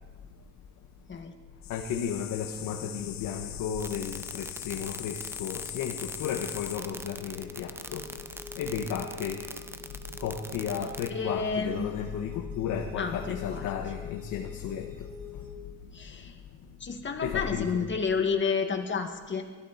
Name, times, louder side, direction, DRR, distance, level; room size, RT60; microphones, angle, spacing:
sound 1, 1.6-6.8, left 13 dB, 65° left, 0.7 m, -41 dB
voice 1, 1.7-9.5 9.7-15.1 15.4-15.5 16.1-16.2 17.2-18.0, left 7 dB, 90° left, 2 dB, 1.4 m, -34 dB
sound 2, 3.8-11.1, right 2 dB, 10° right, 0.8 m, -41 dB
sound 3, 5.6-15.6, left 4 dB, 50° right, 3.0 m, -47 dB
voice 2, 11.1-11.9 13.0-13.7 15.9-16.3 16.8-19.4, left 5 dB, 40° left, 4 dB, 2.1 m, -30 dB
23.5 x 13.0 x 4.3 m, 1.4 s
cardioid pair, 90°, 30 cm